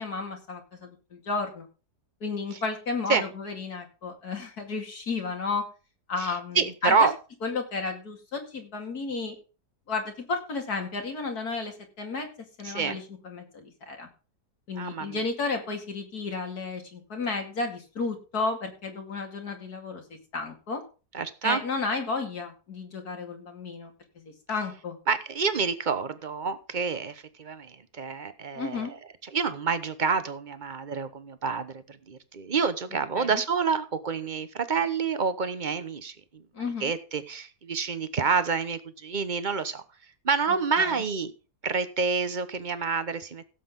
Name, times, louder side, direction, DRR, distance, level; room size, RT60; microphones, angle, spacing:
voice 1, 0.0-1.7 2.2-5.7 6.1-7.1 7.4-9.4 9.9-12.3 12.6-14.1 14.7-20.8 21.4-23.9 24.2-25.0 28.5-28.9 33.2-33.4 36.5-36.9 40.5-41.0, left 4 dB, 75° left, 3 dB, 2.9 m, -33 dB
voice 2, 6.2-7.1 12.6-13.0 14.8-15.2 21.1-21.6 25.1-28.9 29.3-36.4 36.8-39.8 40.2-41.3 41.6-43.5, right 5 dB, 35° right, 12 dB, 1.0 m, -28 dB
16.5 x 7.7 x 3.8 m, 0.34 s
omnidirectional pair, 1.7 m